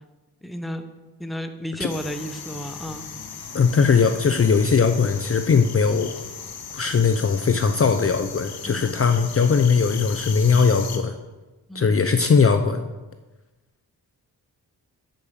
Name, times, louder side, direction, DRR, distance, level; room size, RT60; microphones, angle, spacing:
voice 1, 0.4-0.8 1.2-3.1 8.7-9.0 11.7-12.0, equal, ahead, 6 dB, 1.0 m, -33 dB
sound 1, 1.9-11.0, left 6 dB, 65° left, 1.7 m, -37 dB
voice 2, 3.5-6.1 6.7-11.1 11.7-12.8, left 5 dB, 35° left, 7 dB, 0.7 m, -19 dB
11.0 x 4.8 x 7.1 m, 1.1 s
cardioid pair, 65°, 40 cm